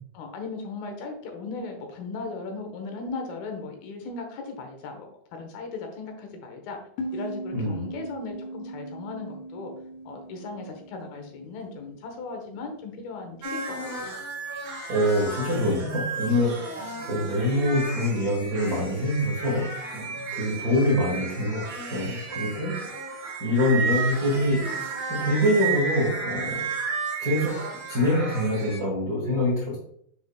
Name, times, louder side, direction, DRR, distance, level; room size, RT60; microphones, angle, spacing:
voice 1, 0.1-6.8 7.1-9.7 10.1-14.2 16.9-17.3, left 3 dB, 70° left, 4 dB, 3.0 m, -37 dB
sound 1, 7.0-12.3, right 1 dB, 90° left, 2.9 m, -39 dB
sound 2, 13.4-28.8, right 4 dB, 55° right, 1.0 m, -33 dB
voice 2, 14.9-19.7 19.9-22.8 23.4-26.7 27.2-27.6 27.9-29.8, left 1 dB, 80° right, -5 dB, 0.8 m, -25 dB
7.0 x 6.9 x 2.3 m, 0.67 s
omnidirectional pair, 4.6 m